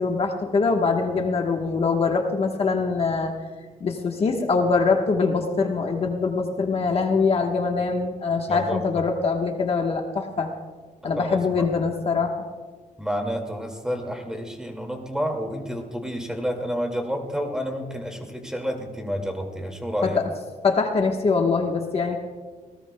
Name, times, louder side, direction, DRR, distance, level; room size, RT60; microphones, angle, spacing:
voice 1, 0.0-3.3 3.8-10.5 11.0-12.4 20.0-20.3 20.6-22.2, left 4 dB, 45° left, 2 dB, 1.2 m, -23 dB
voice 2, 8.5-8.8 11.2-11.7 13.0-20.2, equal, 5° right, 3 dB, 2.1 m, -29 dB
27.5 x 17.5 x 2.2 m, 1.4 s
cardioid pair, 125°, 14 cm